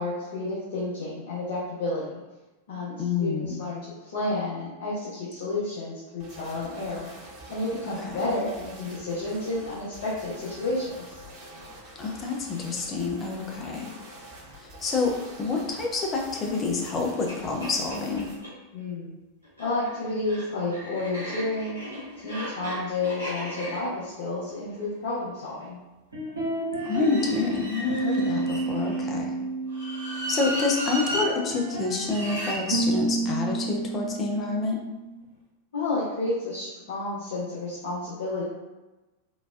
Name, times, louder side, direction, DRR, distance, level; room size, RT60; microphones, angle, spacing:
voice 1, 0.0-2.1 2.7-2.9 3.2-7.1 7.5-11.2 18.7-19.2 19.6-21.8 22.2-25.8 29.0-29.3 35.7-38.4, left 2 dB, 55° left, -8 dB, 0.9 m, -31 dB
voice 2, 3.0-3.6 8.0-8.3 12.0-13.9 14.6-18.3 26.8-29.4 30.3-34.8, left 4 dB, 25° left, 0 dB, 0.5 m, -28 dB
sound 1, 6.2-18.4, right 1 dB, 40° right, 0.9 m, -46 dB
sound 2, 16.8-16.9 17.3-17.4 17.6-18.5 19.4-25.6 26.8-29.1 29.7-31.3 32.1-32.6, equal, 85° left, 1.3 m, -36 dB
sound 3, 26.1-27.5 27.9-30.6 30.9-35.2, right 3 dB, 85° right, 1.0 m, -30 dB
3.8 x 2.3 x 2.4 m, 1.1 s
figure-of-eight pair, 90°, 0 cm